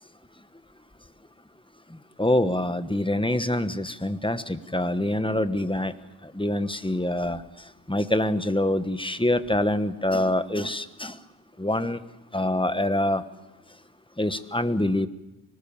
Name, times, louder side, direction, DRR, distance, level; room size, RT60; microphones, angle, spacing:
voice 1, 2.2-5.9 6.3-7.4 7.9-11.2 11.6-12.0 12.3-13.2 14.2-15.1, left 1 dB, 10° left, 11 dB, 1.2 m, -25 dB
24.0 x 19.5 x 7.2 m, 1.0 s
wide cardioid pair, 40°, 48 cm